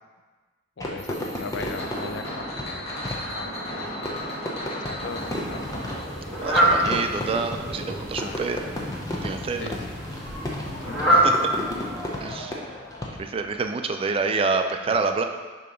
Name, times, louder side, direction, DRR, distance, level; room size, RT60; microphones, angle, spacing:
voice 1, 0.8-4.2 4.9-5.6 8.1-8.4 9.6-9.8 10.8-11.4 14.9-15.1, left 4 dB, 70° left, 6 dB, 0.5 m, -38 dB
Fireworks, 0.8-13.5, left 1 dB, 20° left, 0.7 m, -34 dB
sound 1, 1.0-8.0, equal, 35° left, 1.4 m, -35 dB
Fowl, 5.0-12.3, right 1 dB, 5° left, 1.3 m, -26 dB
voice 2, 6.4-8.6 9.2-9.7 11.1-11.3 12.2-12.6 13.2-15.2, right 4 dB, 30° right, 6 dB, 0.3 m, -27 dB
6.8 x 2.9 x 5.1 m, 1.4 s
head